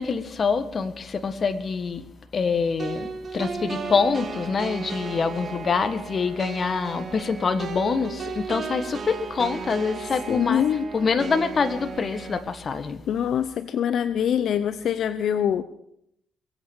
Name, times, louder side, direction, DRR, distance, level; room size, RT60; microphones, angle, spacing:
voice 1, 0.0-2.0 2.3-10.6 10.9-13.0, left 5 dB, 40° left, 1.6 m, -25 dB
sound 1, 2.8-12.4, right 5 dB, 50° right, 2.1 m, -35 dB
voice 2, 10.3-10.8 13.1-15.6, left 9 dB, 70° left, 0.7 m, -24 dB
22.0 x 8.9 x 7.2 m
cardioid pair, 90°, 0 cm